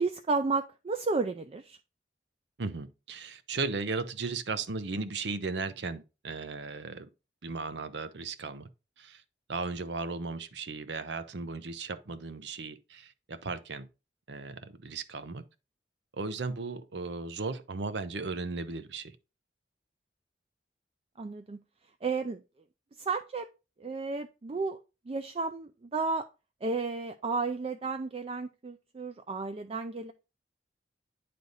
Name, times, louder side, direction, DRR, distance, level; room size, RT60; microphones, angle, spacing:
voice 1, 0.0-1.8 21.2-21.6 22.0-22.4 23.0-23.5 23.8-24.8 25.1-26.3 26.6-30.1, right 4 dB, 35° right, 0.4 m, -32 dB
voice 2, 2.6-7.1 7.4-8.7 9.0-9.2 9.5-13.9 14.3-15.4 16.1-19.2, right 4 dB, 75° right, 0.7 m, -36 dB
9.3 x 3.4 x 3.9 m
head